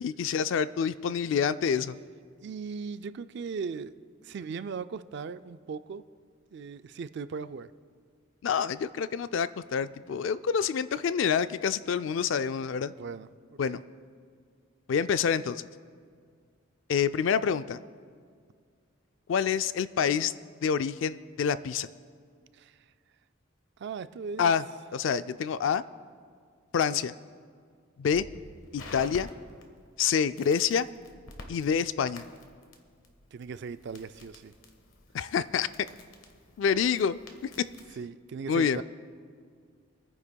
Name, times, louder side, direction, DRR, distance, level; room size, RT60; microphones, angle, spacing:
voice 1, 0.0-2.0 8.4-12.9 13.6-13.8 14.9-15.6 16.9-17.8 19.3-20.3 20.6-21.9 24.4-24.6 24.9-25.8 26.7-27.1 28.0-28.3 28.7-29.3 30.0-30.9 31.5-32.2 35.1-35.7 36.6-37.5 38.5-38.8, left 7 dB, 65° left, 14 dB, 0.3 m, -27 dB
voice 2, 2.4-3.9 4.2-6.0 6.5-7.7 13.0-13.8 22.6-22.7 23.8-24.5 26.9-27.0 33.3-34.5 38.0-38.8, right 5 dB, 55° right, 13 dB, 0.4 m, -38 dB
Crackle, 28.1-38.0, left 2 dB, 90° left, 1.4 m, -50 dB
28.0 x 9.6 x 2.3 m, 2.1 s
head